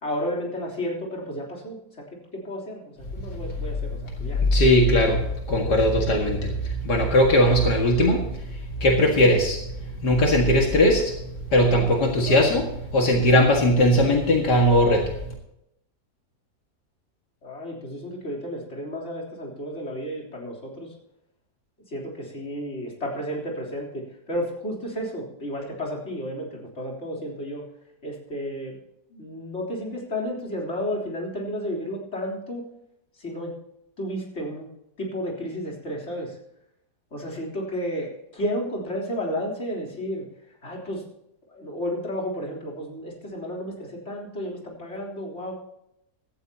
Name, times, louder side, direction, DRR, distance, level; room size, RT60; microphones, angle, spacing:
voice 1, 0.0-1.8 2.3-2.8 3.1-4.4 17.4-20.9 21.9-27.6 28.0-28.8 29.1-32.6 33.2-33.5 34.0-34.7 35.0-36.3 37.1-40.2 40.6-41.0 41.5-45.5, equal, 45° left, -2 dB, 3.9 m, -32 dB
voice 2, 4.5-8.3 8.8-9.6 10.0-11.2 11.5-15.1, equal, 80° left, 1 dB, 2.5 m, -19 dB
16.0 x 14.5 x 2.9 m, 0.80 s
omnidirectional pair, 1.8 m